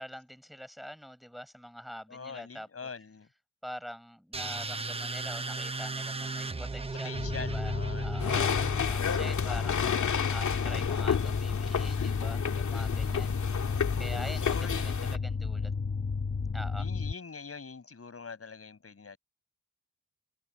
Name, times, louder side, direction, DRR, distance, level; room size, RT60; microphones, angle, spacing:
voice 1, 0.0-2.9 3.6-8.4 8.9-10.0 10.3-13.4 14.0-15.7 16.5-16.9, equal, ahead, 7.6 m, -44 dB
voice 2, 2.1-3.3 7.0-8.6 12.2-12.9 13.2-13.4 14.4-14.9 16.8-19.2, left 5 dB, 50° left, 6.3 m, -44 dB
sound 1, 4.3-9.1, right 3 dB, 20° right, 0.8 m, -36 dB
sound 2, 7.2-17.1, left 4 dB, 35° left, 1.1 m, -32 dB
sound 3, 8.2-15.2, left 7 dB, 80° left, 2.4 m, -31 dB
cardioid pair, 65°, 29 cm